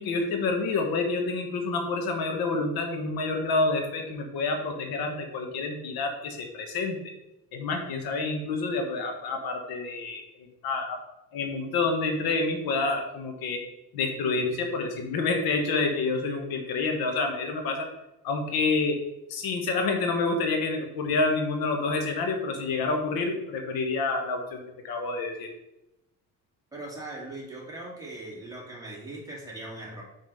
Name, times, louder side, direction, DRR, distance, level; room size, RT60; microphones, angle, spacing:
voice 1, 0.0-7.0 7.5-10.2 10.6-11.0 11.3-13.6 13.9-17.9 18.2-19.0 19.3-25.5, left 3 dB, 85° left, 4 dB, 1.4 m, -28 dB
voice 2, 26.7-30.0, right 2 dB, 10° right, -5 dB, 2.7 m, -40 dB
5.3 x 5.0 x 5.4 m, 0.89 s
cardioid pair, 135°, 35 cm